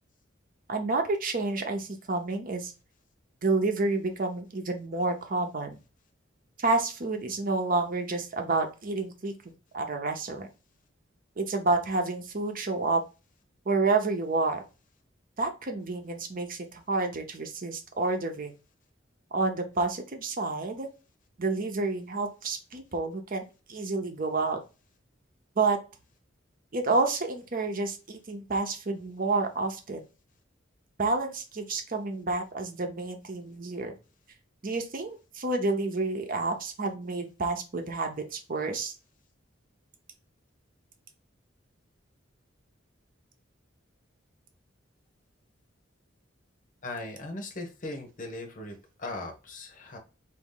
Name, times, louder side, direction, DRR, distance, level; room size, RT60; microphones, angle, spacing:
voice 1, 0.7-2.7 3.4-5.8 6.6-9.3 9.7-10.5 11.4-13.0 13.7-14.6 15.4-18.5 19.3-20.9 21.4-23.4 23.7-24.6 25.6-25.8 26.7-30.0 31.0-33.9 34.6-38.9, right 3 dB, 45° right, 5 dB, 0.8 m, -29 dB
voice 2, 46.8-50.0, left 2 dB, 45° left, 3 dB, 1.0 m, -39 dB
4.1 x 2.8 x 3.8 m, 0.31 s
head